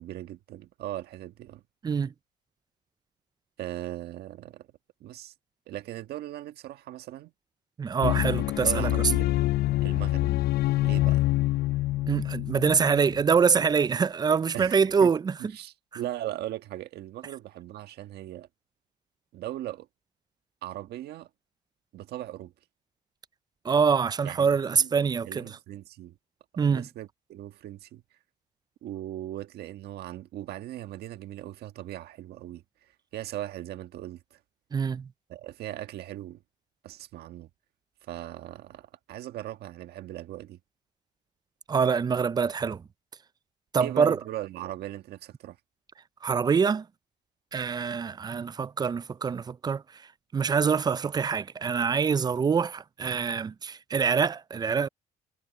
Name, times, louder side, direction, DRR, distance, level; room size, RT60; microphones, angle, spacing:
voice 1, 0.0-1.6 3.6-4.7 5.0-5.3 5.7-7.3 8.1-9.3 9.8-10.3 10.8-11.3 14.5-15.1 15.4-18.5 19.3-19.9 20.6-21.3 21.9-22.5 24.2-24.5 24.7-24.9 25.2-26.2 26.5-28.0 28.8-34.4 35.3-36.4 36.8-37.5 38.0-40.6 43.8-45.6, right 13 dB, 70° right, 1.5 m, -39 dB
voice 2, 7.8-8.9 12.1-15.4 23.6-25.6 26.6-26.9 34.7-35.1 41.7-42.8 43.7-44.2 46.2-46.9 47.5-49.8 50.3-54.9, right 6 dB, 25° right, 0.4 m, -25 dB
sound 1, 8.0-13.3, left 16 dB, 70° left, 0.6 m, -26 dB
cardioid pair, 110°, 17 cm